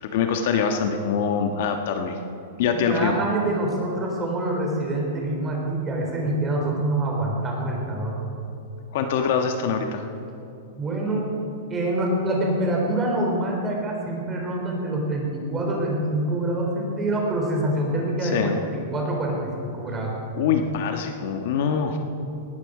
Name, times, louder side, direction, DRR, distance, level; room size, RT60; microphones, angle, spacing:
voice 1, 0.0-2.2 2.6-3.2 8.9-10.0 18.2-18.6 20.3-22.0, left 6 dB, 55° left, 5 dB, 1.3 m, -24 dB
voice 2, 2.7-8.2 10.7-11.3 11.7-20.1, right 1 dB, 15° right, -1 dB, 3.6 m, -26 dB
18.5 x 14.0 x 5.0 m, 2.7 s
supercardioid pair, 155°, 0 cm